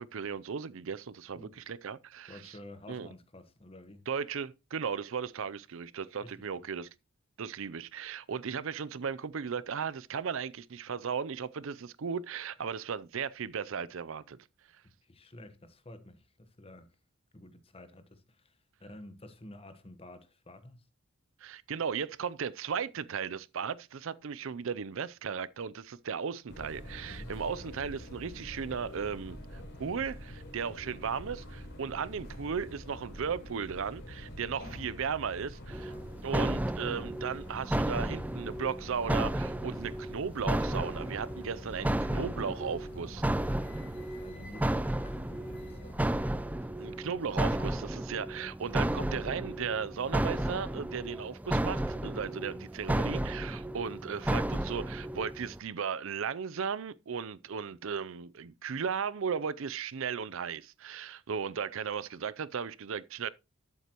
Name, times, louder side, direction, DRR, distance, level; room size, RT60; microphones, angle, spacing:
voice 1, 0.0-2.5 2.9-3.1 4.1-6.9 7.4-14.4 21.4-35.9 36.2-43.2 46.8-63.3, right 6 dB, 60° right, 0.5 m, -36 dB
voice 2, 2.3-4.0 6.2-6.7 15.0-16.9 17.3-20.9 27.1-27.3 35.8-36.1 41.7-42.5 44.1-46.2 46.5-47.1, left 1 dB, 25° left, 1.1 m, -51 dB
sound 1, 26.5-45.9, left 1 dB, 55° left, 4.0 m, -46 dB
sound 2, 35.7-55.6, right 1 dB, 5° right, 0.4 m, -33 dB
12.0 x 8.2 x 2.9 m
head